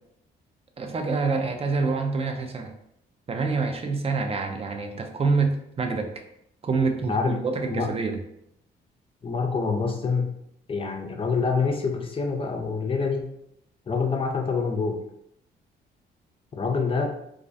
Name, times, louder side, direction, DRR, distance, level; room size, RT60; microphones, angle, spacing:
voice 1, 0.8-2.7 3.3-6.1 6.6-8.2, right 4 dB, 30° right, 4 dB, 0.4 m, -26 dB
voice 2, 9.2-10.3 10.7-13.3 13.9-15.0 16.5-17.1, left 4 dB, 30° left, 3 dB, 0.5 m, -26 dB
2.4 x 2.0 x 2.5 m, 0.76 s
supercardioid pair, 70°, 19 cm